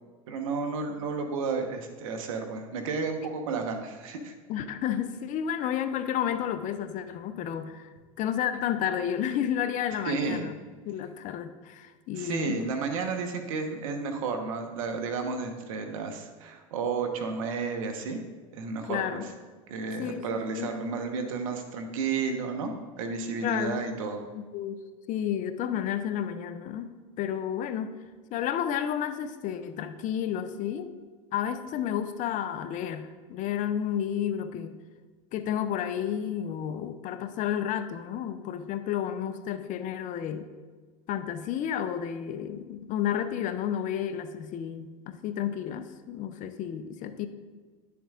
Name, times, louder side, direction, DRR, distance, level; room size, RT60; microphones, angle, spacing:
voice 1, 0.3-4.3 10.0-10.4 12.1-18.2 18.5-19.2 19.7-24.3, right 4 dB, 75° right, 5 dB, 1.1 m, -32 dB
voice 2, 4.5-7.9 8.2-10.6 10.9-12.6 18.9-19.3 20.0-20.7 23.4-23.8 24.3-24.8 25.1-26.9 27.2-27.9 28.3-30.9 31.3-34.8 35.3-40.5 41.1-47.3, left 9 dB, 50° left, 10 dB, 0.6 m, -31 dB
10.0 x 7.0 x 2.4 m, 1.4 s
hypercardioid pair, 90°, 17 cm